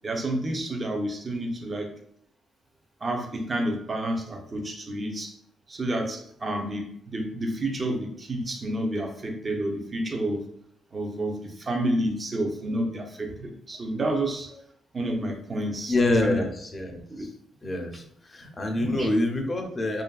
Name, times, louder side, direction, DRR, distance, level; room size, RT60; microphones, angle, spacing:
voice 1, 0.0-1.9 3.0-5.3 5.7-10.5 10.9-14.5 14.9-15.9 16.2-16.4 17.1-17.2 18.8-19.1, right 1 dB, 30° right, 3 dB, 0.5 m, -29 dB
voice 2, 15.9-17.3 17.6-20.0, left 2 dB, 30° left, 3 dB, 0.5 m, -26 dB
2.6 x 2.5 x 2.3 m, 0.68 s
cardioid pair, 90°, 0 cm